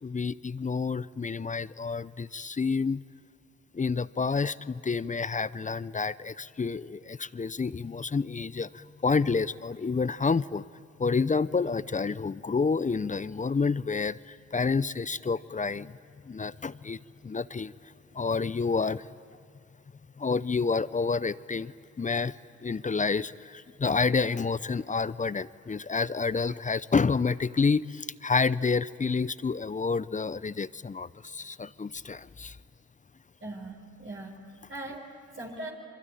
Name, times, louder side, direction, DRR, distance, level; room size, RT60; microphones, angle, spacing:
voice 1, 0.0-3.0 3.7-10.6 11.0-16.0 16.2-19.1 20.2-32.6, left 4 dB, 25° left, 18 dB, 0.7 m, -29 dB
voice 2, 33.4-35.7, right 2 dB, 40° right, 0 dB, 4.5 m, -41 dB
26.0 x 24.0 x 9.2 m, 2.4 s
supercardioid pair, 50°, 31 cm